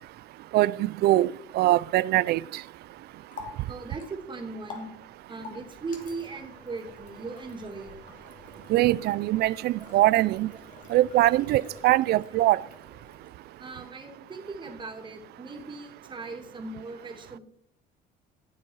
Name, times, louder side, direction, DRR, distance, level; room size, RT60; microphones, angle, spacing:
voice 1, 1.0-2.4 8.7-10.5 10.9-12.6, right 16 dB, 65° right, 0.4 m, -22 dB
Water tap faucet, 2.8-13.6, left 4 dB, 45° left, 2.8 m, -49 dB
voice 2, 3.7-4.9 5.3-8.0 13.6-17.4, right 3 dB, 25° right, 2.7 m, -38 dB
14.5 x 7.6 x 4.7 m
cardioid pair, 115°, 18 cm